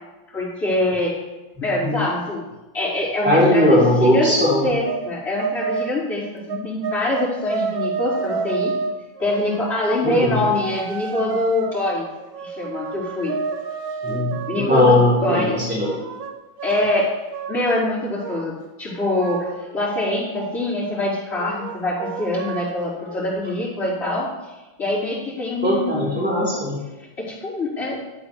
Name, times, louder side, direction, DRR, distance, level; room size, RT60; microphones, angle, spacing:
voice 1, 0.3-1.1 1.6-2.4 2.7-4.3 4.6-8.7 9.2-12.0 12.4-13.4 14.5-15.5 16.6-17.1 17.5-18.5 18.8-24.3 24.8-26.3 27.2-28.0, left 1 dB, 40° left, -13 dB, 4.4 m, -24 dB
voice 2, 1.6-2.0 3.2-4.6 10.0-10.4 14.0-16.0 25.6-26.7, left 1 dB, 5° right, -7 dB, 3.3 m, -18 dB
sound 1, 4.9-5.1 5.4-6.0 6.5-9.8 10.6-14.8 15.8-17.8 18.2-18.5 18.9-20.8 21.3-23.3, right 5 dB, 80° right, 1.5 m, -30 dB
12.5 x 8.0 x 3.3 m, 1.1 s
omnidirectional pair, 2.2 m